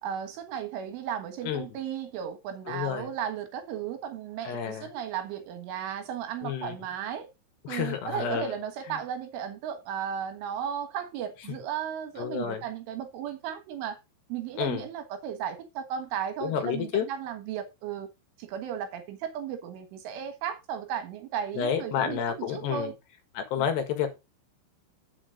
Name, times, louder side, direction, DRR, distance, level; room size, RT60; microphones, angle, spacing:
voice 1, 0.0-7.3 7.7-14.0 14.3-18.1 18.4-22.9 23.6-23.7, right 9 dB, 80° right, 3.8 m, -35 dB
voice 2, 2.7-3.1 4.4-4.9 6.4-6.8 7.6-8.5 8.9-9.0 12.2-12.6 14.6-14.8 16.4-17.1 21.6-22.9 23.4-24.1, left 8 dB, 65° left, 3.3 m, -30 dB
9.9 x 7.4 x 3.8 m
omnidirectional pair, 5.7 m